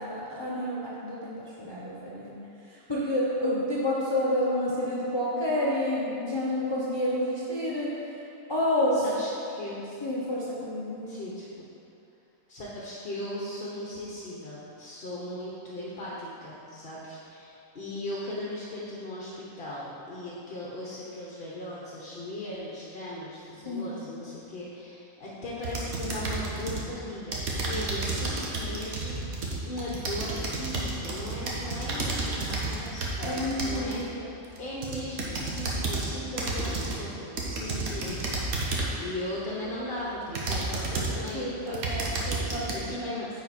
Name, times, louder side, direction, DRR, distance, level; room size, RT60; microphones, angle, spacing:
voice 1, 0.0-2.4 2.7-7.9 8.5-9.0 10.0-11.2 23.6-24.0 33.2-34.1 41.3-42.7 43.1-43.3, left 1 dB, 20° left, -7 dB, 0.8 m, -29 dB
voice 2, 8.9-9.8 11.1-11.6 12.5-34.3 34.6-42.3 42.7-43.3, left 1 dB, 45° left, -6 dB, 1.1 m, -38 dB
sound 1, 25.6-26.9 27.3-34.0 34.6-36.1 36.4-37.0 37.4-39.0 39.6-39.7 40.3-41.3 41.7-42.7, right 3 dB, 80° right, 1.5 m, -31 dB
9.4 x 4.5 x 4.2 m, 2.8 s
omnidirectional pair, 1.5 m